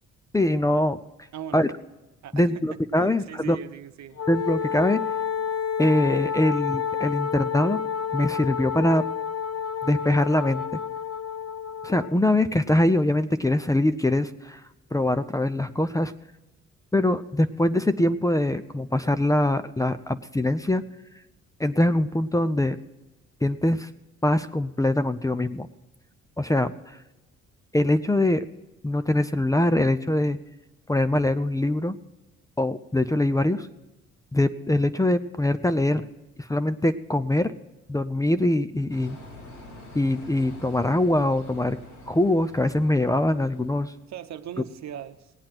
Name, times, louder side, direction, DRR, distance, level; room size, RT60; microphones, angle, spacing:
voice 1, 0.3-1.0 1.5-1.7 2.3-3.6 4.3-5.0 5.8-7.8 8.1-9.0 9.8-10.6 11.8-14.6 14.9-16.1 16.9-20.8 21.6-22.8 23.4-23.9 24.2-25.7 26.4-27.0 27.7-28.5 28.8-30.4 30.9-32.0 32.6-33.7 34.3-36.0 36.4-37.5 37.9-39.2 39.9-41.8 42.1-43.9, left 1 dB, 10° left, 12 dB, 0.6 m, -23 dB
voice 2, 1.3-1.7 2.2-2.4 3.0-4.2 44.1-45.3, right 10 dB, 65° right, 9 dB, 0.9 m, -39 dB
Wind instrument woodwind instrument, 4.2-12.2, left 7 dB, 55° left, 1.0 m, -29 dB
sound 1, 38.9-44.0, left 2 dB, 75° left, 5.9 m, -46 dB
18.5 x 8.7 x 5.9 m, 1.1 s
cardioid pair, 90°, 30 cm